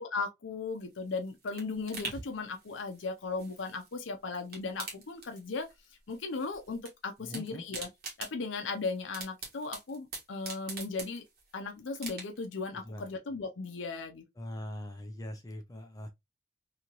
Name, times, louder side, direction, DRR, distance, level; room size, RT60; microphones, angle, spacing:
voice 1, 0.0-5.7 6.1-7.9 8.2-11.2 11.5-14.2, left 4 dB, 90° left, 0.6 m, -37 dB
sound 1, 0.8-4.0 4.3-5.8 6.1-6.9 7.2-11.5 11.9-12.6 13.0-13.1, right 3 dB, 50° right, 1.2 m, -44 dB
sound 2, 2.1-5.6 5.8-5.9, right 2 dB, 80° right, 0.7 m, -54 dB
voice 2, 7.2-7.6 12.8-13.1 14.4-16.1, left 1 dB, 20° left, 0.4 m, -42 dB
3.0 x 2.8 x 2.4 m
head